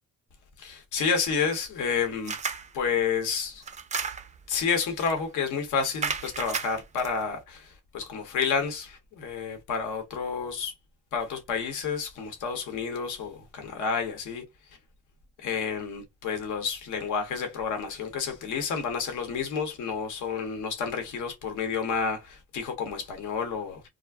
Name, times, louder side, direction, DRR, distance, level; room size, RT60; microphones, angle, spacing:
voice 1, 0.6-2.3 2.7-3.6 4.5-10.7 11.1-14.4 15.4-23.8, left 6 dB, 80° left, 0.8 m, -30 dB
sound 1, 2.3-2.7 3.6-4.4 5.0-5.2 6.0-7.1, right 5 dB, 25° right, 0.3 m, -33 dB
2.4 x 2.0 x 3.3 m
cardioid pair, 90°, 30 cm